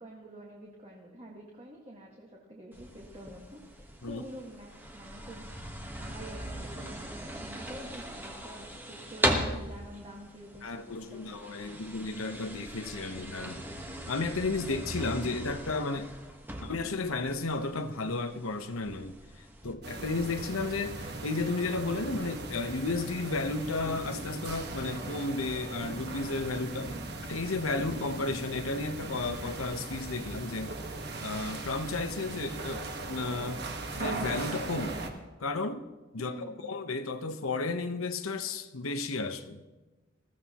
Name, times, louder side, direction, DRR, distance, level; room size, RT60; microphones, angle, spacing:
voice 1, 0.0-5.4 5.9-11.2 26.8-27.1 36.2-36.7, right 1 dB, 30° right, 1.8 m, -47 dB
sound 1, 2.7-19.7, equal, 10° right, 1.2 m, -39 dB
voice 2, 10.6-13.7 14.1-16.1 16.6-19.1 19.6-26.9 27.3-30.8 31.2-33.6 33.9-35.0 35.4-35.9 36.1-36.3 36.6-39.6, left 3 dB, 90° left, 1.0 m, -33 dB
sound 2, 19.8-35.1, right 2 dB, 50° right, 1.4 m, -39 dB
21.0 x 15.0 x 3.0 m
head